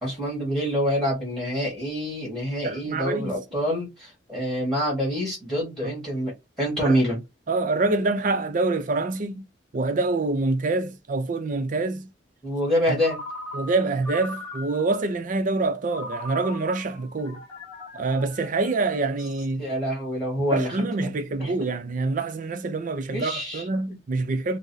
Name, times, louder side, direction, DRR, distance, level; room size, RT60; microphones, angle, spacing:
voice 1, 0.0-6.3 6.6-7.2 12.4-13.2 19.6-20.8 21.0-21.1 21.4-21.5 23.1-24.0, equal, ahead, 1.5 m, -26 dB
voice 2, 2.6-3.4 5.8-5.9 6.8-7.0 7.5-9.4 9.7-12.1 13.5-17.4 17.9-19.6 20.5-24.6, right 3 dB, 45° right, 0.5 m, -26 dB
Ringtone, 13.0-15.1 15.9-19.3, left 1 dB, 15° left, 1.6 m, -39 dB
3.8 x 2.0 x 2.6 m
head